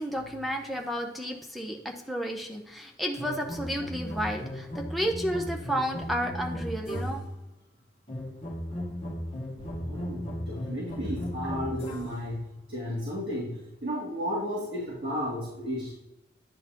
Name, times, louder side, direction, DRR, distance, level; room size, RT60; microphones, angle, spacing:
voice 1, 0.0-7.2, equal, ahead, 1 dB, 0.6 m, -32 dB
sound 1, 3.2-7.4 8.1-12.3, equal, 35° left, 1.1 m, -36 dB
voice 2, 9.8-15.9, equal, 60° right, -9 dB, 2.4 m, -33 dB
10.5 x 3.9 x 2.9 m, 0.90 s
head